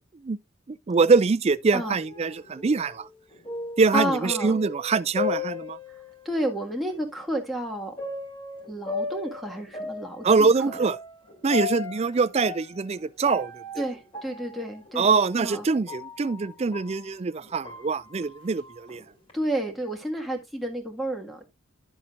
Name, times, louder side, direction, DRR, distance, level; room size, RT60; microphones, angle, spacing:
voice 1, 0.7-3.1 3.8-5.8 10.2-11.0 11.4-13.6 15.0-19.0, right 4 dB, 30° right, 0.4 m, -24 dB
sound 1, 1.8-6.4 6.9-7.0 8.0-17.0 17.4-19.3, left 4 dB, 25° left, 3.4 m, -36 dB
voice 2, 3.9-4.6 6.3-7.9 8.7-10.8 13.8-15.1 15.4-15.7 19.3-21.5, right 1 dB, ahead, 1.8 m, -31 dB
11.0 x 7.1 x 2.5 m
head